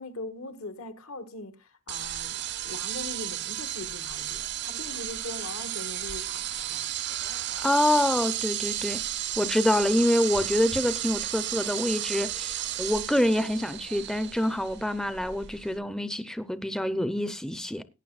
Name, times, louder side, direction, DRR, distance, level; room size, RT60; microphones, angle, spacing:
voice 1, 0.0-6.9, left 2 dB, 80° left, 1.5 m, -41 dB
sound 1, 1.9-15.8, right 12 dB, 50° right, 0.7 m, -33 dB
voice 2, 7.6-9.0 9.4-17.8, left 1 dB, 5° left, 0.5 m, -26 dB
17.5 x 10.0 x 2.4 m
head